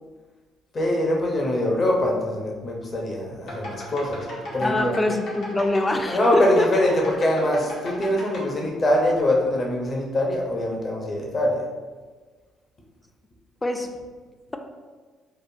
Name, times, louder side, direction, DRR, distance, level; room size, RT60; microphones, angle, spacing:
voice 1, 0.7-4.3 4.5-4.9 6.1-11.6, left 1 dB, 40° left, -1 dB, 0.7 m, -23 dB
sound 1, 3.4-8.4, left 1 dB, 70° left, 0.9 m, -37 dB
voice 2, 4.6-6.7 13.6-13.9, left 2 dB, 20° left, 5 dB, 0.4 m, -24 dB
3.3 x 2.1 x 2.6 m, 1.4 s
hypercardioid pair, 55°, 0 cm